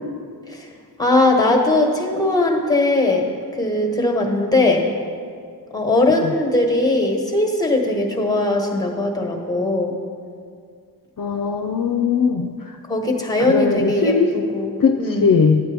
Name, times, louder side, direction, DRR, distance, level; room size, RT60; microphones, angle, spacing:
voice 1, 1.0-4.9 5.7-10.0 12.9-15.3, left 2 dB, 10° left, 1 dB, 1.3 m, -20 dB
voice 2, 11.2-12.5 13.5-14.3 14.8-15.6, left 5 dB, 55° left, 4 dB, 0.5 m, -19 dB
10.5 x 8.9 x 3.4 m, 2.2 s
wide cardioid pair, 55°, 40 cm